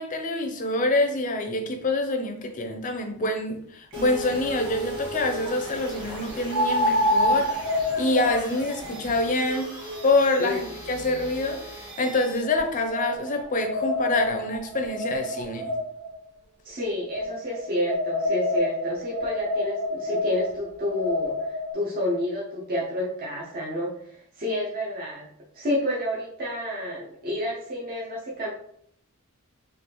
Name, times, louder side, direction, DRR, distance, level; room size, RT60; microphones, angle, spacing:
voice 1, 0.0-7.6 8.0-9.7 10.0-11.6 12.0-15.7, left 2 dB, 35° left, 4 dB, 0.4 m, -26 dB
sound 1, 3.9-12.4, right 1 dB, 20° right, 1.2 m, -38 dB
sound 2, 3.9-4.0 6.5-11.7 12.4-16.1 17.1-21.7, left 1 dB, 85° right, 0.6 m, -28 dB
voice 2, 16.6-25.3 25.5-28.5, left 1 dB, 45° right, -5 dB, 0.6 m, -29 dB
3.3 x 2.4 x 2.9 m, 0.68 s
head